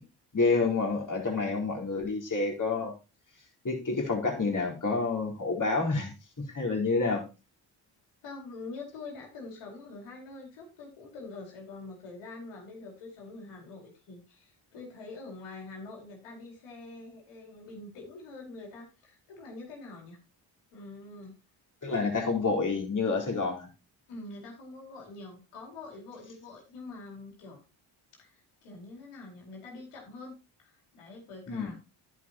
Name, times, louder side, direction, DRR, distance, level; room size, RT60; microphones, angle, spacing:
voice 1, 0.3-2.9 3.6-7.2 21.8-23.7 31.5-31.7, left 3 dB, 40° left, 0 dB, 4.1 m, -28 dB
voice 2, 8.2-20.2 20.7-21.3 24.1-27.6 28.2-31.7, left 3 dB, 85° left, 0 dB, 4.7 m, -45 dB
11.0 x 10.5 x 2.9 m, 0.29 s
supercardioid pair, 55°, 50 cm